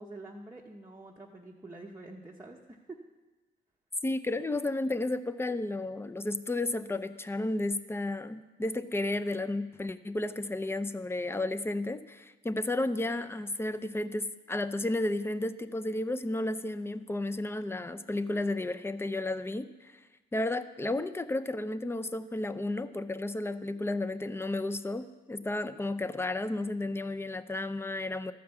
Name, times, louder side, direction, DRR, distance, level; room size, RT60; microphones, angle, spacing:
voice 1, 0.0-3.0, right 2 dB, 15° right, -2 dB, 0.8 m, -47 dB
voice 2, 4.0-19.9 20.3-28.3, left 2 dB, 10° left, 12 dB, 0.5 m, -32 dB
13.0 x 5.1 x 7.0 m, 1.2 s
cardioid pair, 90°, 20 cm